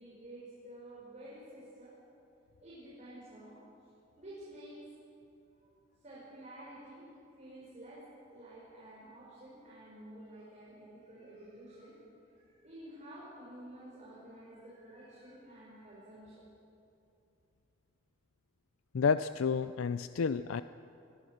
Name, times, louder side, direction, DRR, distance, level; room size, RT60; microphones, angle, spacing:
voice 1, 0.0-1.9 2.6-3.6 4.2-4.8 6.0-7.1 7.4-8.1 8.3-12.0 12.3-16.4, right 1 dB, 35° right, -7 dB, 5.7 m, -51 dB
voice 2, 18.9-20.6, left 5 dB, 90° left, 13 dB, 0.5 m, -30 dB
22.0 x 22.0 x 6.5 m, 2.8 s
head